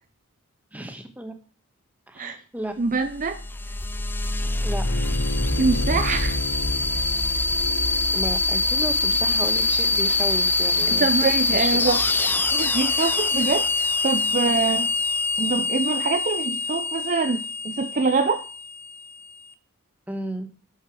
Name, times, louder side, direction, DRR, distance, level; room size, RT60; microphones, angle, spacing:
voice 1, 0.7-1.3 2.1-2.7 4.6-4.8 8.1-11.7 20.1-20.5, right 1 dB, 5° right, 6 dB, 1.4 m, -33 dB
voice 2, 2.8-3.4 5.6-6.4 10.9-12.0 12.5-13.7 14.0-14.9 15.4-18.4, right 4 dB, 40° right, 9 dB, 0.6 m, -24 dB
sound 1, 3.0-19.3, left 3 dB, 10° left, 0.5 m, -24 dB
Bowed string instrument, 4.8-9.9, left 2 dB, 65° left, 1.1 m, -36 dB
12.0 x 7.1 x 4.9 m, 0.40 s
head